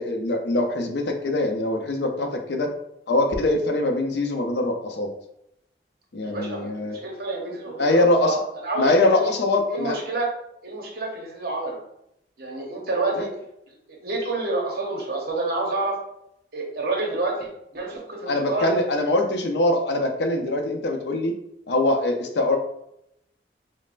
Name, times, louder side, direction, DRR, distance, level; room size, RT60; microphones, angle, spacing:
voice 1, 0.0-2.7 3.1-5.1 6.1-7.0 7.8-8.4 8.8-10.0 13.2-13.3 18.3-21.3 21.7-22.6, left 2 dB, 70° left, 4 dB, 0.6 m, -23 dB
voice 2, 6.2-9.3 9.7-10.3 10.6-11.8 12.4-13.3 13.9-16.0 16.5-18.7, right 2 dB, 60° right, -1 dB, 0.9 m, -28 dB
5.2 x 2.0 x 2.4 m, 0.79 s
head